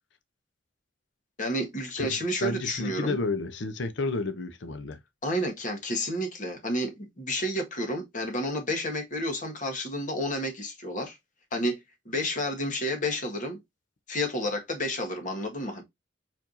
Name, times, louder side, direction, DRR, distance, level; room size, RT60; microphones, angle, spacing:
voice 1, 1.4-3.2 5.2-11.2 11.5-11.8 12.0-13.6 14.1-15.8, left 1 dB, 45° left, 1.5 m, -30 dB
voice 2, 2.0-5.0, left 3 dB, 70° left, 0.7 m, -31 dB
4.7 x 4.4 x 2.6 m
head